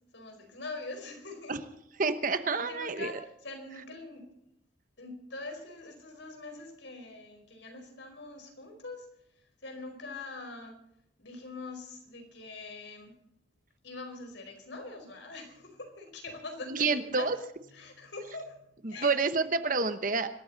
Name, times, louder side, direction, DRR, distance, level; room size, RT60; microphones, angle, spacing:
voice 1, 0.0-1.6 2.5-4.3 5.0-9.1 9.4-10.7 11.2-13.1 13.8-17.3 17.7-19.2, left 3 dB, 70° left, 4 dB, 4.8 m, -43 dB
voice 2, 2.0-3.2 16.7-17.4 18.8-20.3, right 4 dB, 45° right, 10 dB, 1.0 m, -28 dB
26.0 x 13.5 x 4.1 m, 0.77 s
head